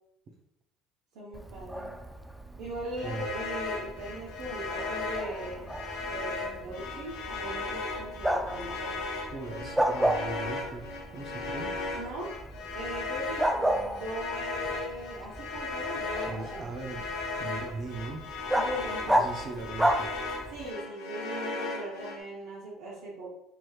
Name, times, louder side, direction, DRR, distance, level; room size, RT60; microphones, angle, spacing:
voice 1, 1.1-1.9 2.6-5.7 6.1-9.0 11.9-12.4 12.7-16.6 18.5-19.3 20.5-23.3, right 1 dB, 75° right, -5 dB, 0.8 m, -39 dB
Bark, 1.3-20.7, right 1 dB, 5° right, 0.3 m, -33 dB
sound 1, 2.9-22.2, left 3 dB, 75° left, 0.8 m, -37 dB
voice 2, 9.3-11.7 16.2-17.1 17.3-18.2 19.1-20.1, right 3 dB, 45° right, 3 dB, 0.6 m, -39 dB
3.1 x 2.9 x 2.3 m, 0.79 s
supercardioid pair, 90°, 0 cm